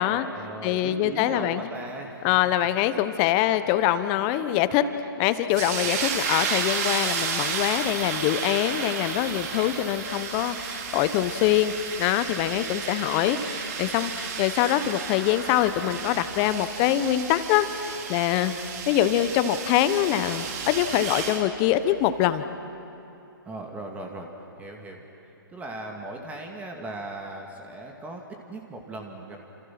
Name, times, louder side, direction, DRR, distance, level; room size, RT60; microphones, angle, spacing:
voice 1, 0.0-2.3 23.4-24.3 24.6-25.0 25.5-29.4, right 2 dB, 10° right, 2 dB, 2.2 m, -38 dB
voice 2, 0.6-1.6 2.2-4.8 5.2-11.7 12.0-18.5 18.9-22.4, left 12 dB, 30° left, 12 dB, 1.1 m, -24 dB
sound 1, 5.5-21.4, right 6 dB, 45° right, 3.4 m, -32 dB
29.5 x 27.0 x 6.1 m, 2.8 s
hypercardioid pair, 140°, 12 cm